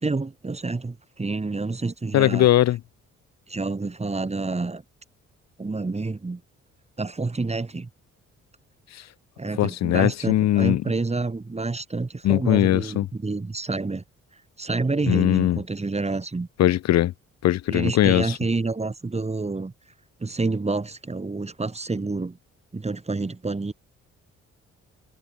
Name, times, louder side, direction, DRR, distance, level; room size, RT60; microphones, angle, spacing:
voice 1, 0.0-2.5 3.5-4.8 5.6-6.4 7.0-7.9 9.4-14.0 14.6-16.5 17.7-19.7 20.2-22.4 22.7-23.7, right 3 dB, 20° right, 1.5 m, -28 dB
voice 2, 2.1-2.8 9.6-10.8 12.2-13.0 15.1-15.6 16.6-17.1 17.4-18.4, left 14 dB, 55° left, 0.5 m, -20 dB
supercardioid pair, 55°, 31 cm